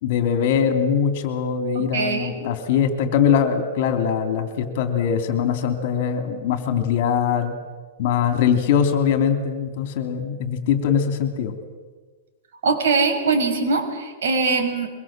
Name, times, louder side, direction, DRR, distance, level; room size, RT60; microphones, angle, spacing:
voice 1, 0.0-7.5 8.0-11.5, left 7 dB, 50° left, 7 dB, 3.1 m, -22 dB
voice 2, 1.7-2.3 12.6-14.9, right 4 dB, 75° right, 4 dB, 6.1 m, -22 dB
23.5 x 23.0 x 7.6 m, 1.4 s
supercardioid pair, 160°, 0 cm